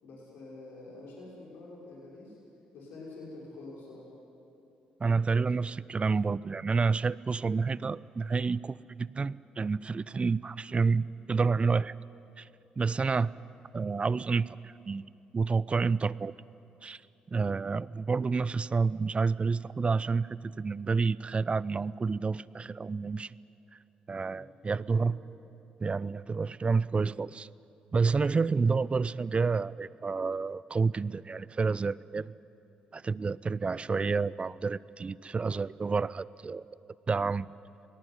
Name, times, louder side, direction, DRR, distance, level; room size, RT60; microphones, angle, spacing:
voice 1, 0.0-2.4 2.7-4.1 24.3-25.1, left 2 dB, 70° left, -4 dB, 6.1 m, -47 dB
voice 2, 5.0-11.9 12.4-12.5 12.8-13.4 13.7-16.3 16.8-17.0 17.3-23.3 24.1-25.1 25.8-27.5 27.9-32.3 32.9-36.6 37.1-37.5, right 4 dB, 30° right, 20 dB, 0.6 m, -29 dB
25.5 x 19.0 x 9.7 m, 2.8 s
hypercardioid pair, 50°, 4 cm